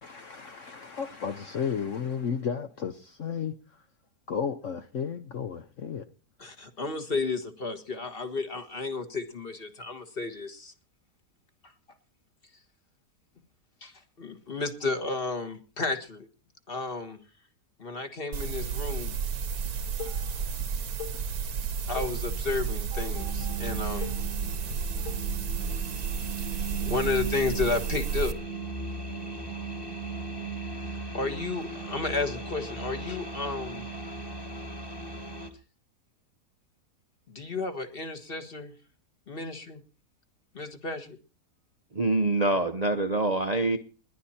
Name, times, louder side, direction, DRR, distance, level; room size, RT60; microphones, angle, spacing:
voice 1, 0.0-3.5 4.3-6.1, left 7 dB, 55° left, 1.1 m, -33 dB
voice 2, 6.4-10.7 11.6-11.7 13.8-16.3 16.7-17.2 17.8-19.2 21.9-24.2 26.8-28.3 31.1-33.9 37.3-38.7 39.3-39.8 40.5-41.2, left 3 dB, 35° left, 1.7 m, -32 dB
sound 1, 18.3-28.3, right 6 dB, 65° right, 1.5 m, -32 dB
Dishes pots and pans, 19.7-20.7 21.0-26.8, left 6 dB, 70° left, 2.6 m, -42 dB
sound 2, 23.2-35.5, right 3 dB, 15° left, 1.6 m, -37 dB
voice 3, 41.9-43.8, right 2 dB, 35° right, 0.7 m, -25 dB
21.0 x 11.5 x 4.3 m
omnidirectional pair, 1.8 m